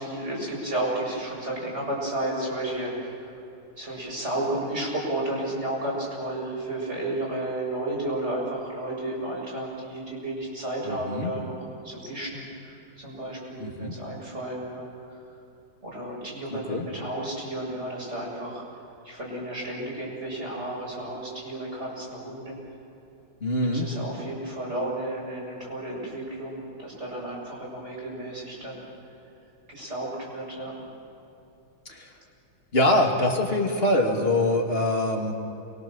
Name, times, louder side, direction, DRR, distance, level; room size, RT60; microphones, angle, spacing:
voice 1, 0.0-3.1 3.8-11.6 11.8-14.9 15.8-18.6 19.0-22.5 23.6-28.8 29.7-30.8, right 1 dB, 30° right, -4 dB, 7.4 m, -32 dB
voice 2, 10.8-11.3 13.6-14.0 16.7-16.9 23.4-23.9 31.9-32.1 32.7-35.3, left 1 dB, 30° left, 1 dB, 2.7 m, -24 dB
29.5 x 23.5 x 7.3 m, 2.8 s
omnidirectional pair, 2.2 m